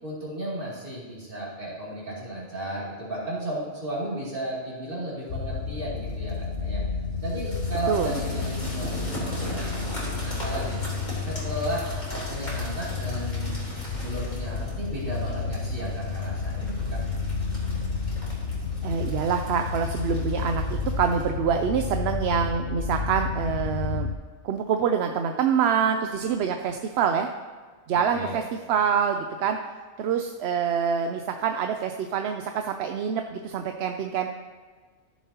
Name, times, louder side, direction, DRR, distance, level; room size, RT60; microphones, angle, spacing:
voice 1, 0.0-6.8 7.2-10.8 11.2-17.0 28.1-28.4, right 1 dB, 50° right, -6 dB, 2.9 m, -34 dB
sound 1, 5.3-24.1, left 4 dB, 60° left, 0.8 m, -31 dB
sound 2, 6.0-6.3 7.2-21.3, equal, 40° left, 3.5 m, -40 dB
voice 2, 18.8-24.1 24.4-27.3 27.9-29.6 30.0-34.3, right 7 dB, 70° right, 6 dB, 0.8 m, -26 dB
14.0 x 7.3 x 2.9 m, 1.5 s
omnidirectional pair, 1.2 m